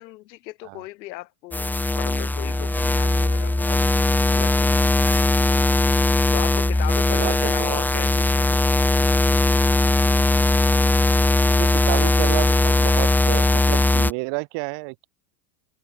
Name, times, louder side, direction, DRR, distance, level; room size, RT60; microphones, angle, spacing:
voice 1, 0.0-3.8 4.3-4.7 6.3-8.7, left 18 dB, 85° left, 2.2 m, -37 dB
sound 1, 1.5-14.1, left 2 dB, 5° left, 0.7 m, -19 dB
voice 2, 7.1-8.1 11.5-15.1, right 29 dB, 60° right, 5.6 m, -31 dB
supercardioid pair, 125°, 50 cm